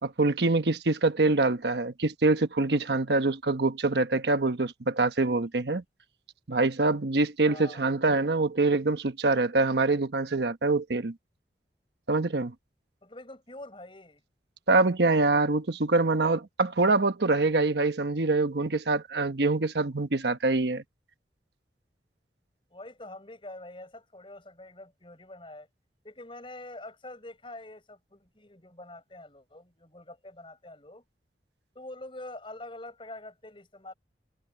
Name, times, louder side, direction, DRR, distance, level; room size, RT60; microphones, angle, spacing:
voice 1, 0.0-5.8 6.5-11.1 12.1-12.5 14.7-20.8, right 3 dB, 75° right, 1.1 m, -25 dB
voice 2, 7.5-7.8 13.0-14.2 16.0-16.2 22.7-25.7 26.0-31.0 31.7-33.9, left 2 dB, 30° left, 6.3 m, -45 dB
head